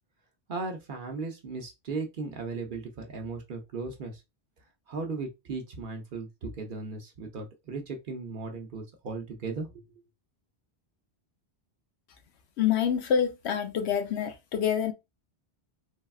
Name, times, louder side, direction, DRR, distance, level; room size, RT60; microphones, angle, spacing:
voice 1, 0.5-4.2 4.9-9.8, right 4 dB, 55° right, 0.7 m, -37 dB
voice 2, 12.6-14.9, left 8 dB, 90° left, 0.9 m, -26 dB
3.4 x 2.2 x 2.3 m
omnidirectional pair, 1.1 m